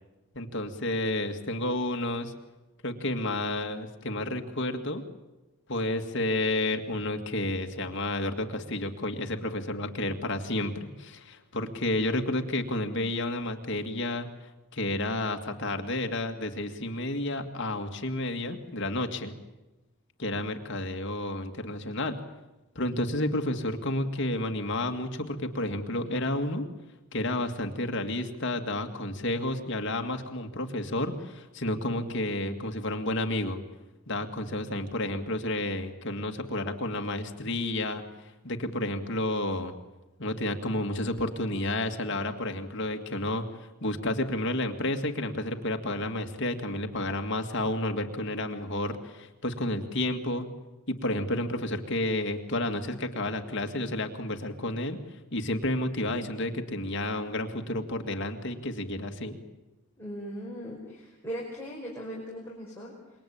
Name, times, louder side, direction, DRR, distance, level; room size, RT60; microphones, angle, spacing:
voice 1, 0.3-2.3 2.8-5.0 5.7-14.3 14.7-19.3 20.2-22.2 22.8-26.6 27.1-33.6 34.1-38.0 38.4-39.7 40.2-50.5 50.9-55.0 55.3-59.4, left 1 dB, 55° left, 5 dB, 2.2 m, -31 dB
voice 2, 60.0-62.9, equal, 10° left, -5 dB, 5.2 m, -39 dB
26.5 x 23.0 x 8.8 m, 1.1 s
head